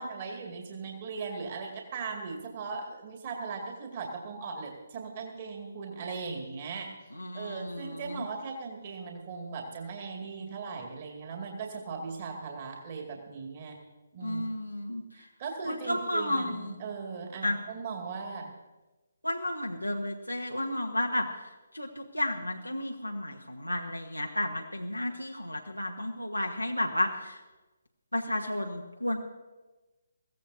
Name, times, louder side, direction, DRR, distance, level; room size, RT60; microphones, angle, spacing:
voice 1, 0.0-6.9 7.3-13.8 14.1-14.4 15.1-18.5, right 4 dB, 35° right, 1 dB, 2.3 m, -38 dB
voice 2, 7.1-8.2 14.2-15.0 15.6-16.7 17.4-17.6 19.2-27.4 28.1-29.2, left 1 dB, 85° left, 1 dB, 1.2 m, -32 dB
22.0 x 16.0 x 2.8 m, 1.2 s
figure-of-eight pair, 140°, 0 cm